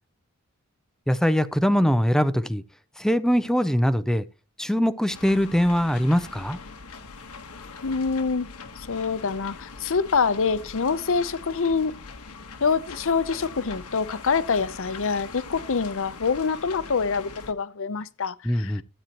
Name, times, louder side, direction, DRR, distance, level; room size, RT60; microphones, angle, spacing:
voice 1, 1.1-2.6 3.0-4.2 4.6-6.6 18.4-18.8, equal, ahead, 0.5 m, -22 dB
sound 1, 5.1-17.5, left 4 dB, 90° left, 1.4 m, -42 dB
voice 2, 7.8-8.5 8.9-12.0 12.6-18.7, left 5 dB, 65° left, 0.7 m, -25 dB
13.0 x 9.0 x 3.0 m
head